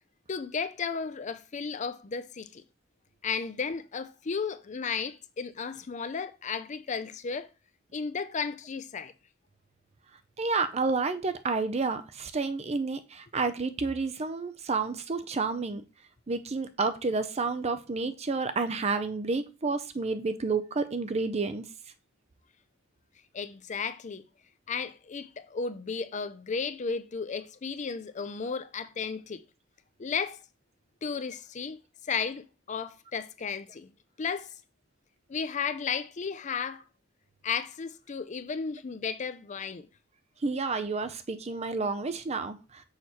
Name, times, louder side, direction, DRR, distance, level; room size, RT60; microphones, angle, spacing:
voice 1, 0.3-2.6 3.2-7.5 7.9-9.1 23.3-24.2 24.7-29.4 30.0-30.4 31.0-31.8 32.1-33.9 34.2-34.5 35.3-36.8 37.4-39.9, left 5 dB, 40° left, 0.5 m, -34 dB
voice 2, 10.4-15.8 16.3-21.6 40.4-42.8, right 4 dB, 35° right, 0.5 m, -30 dB
6.4 x 3.1 x 5.6 m
head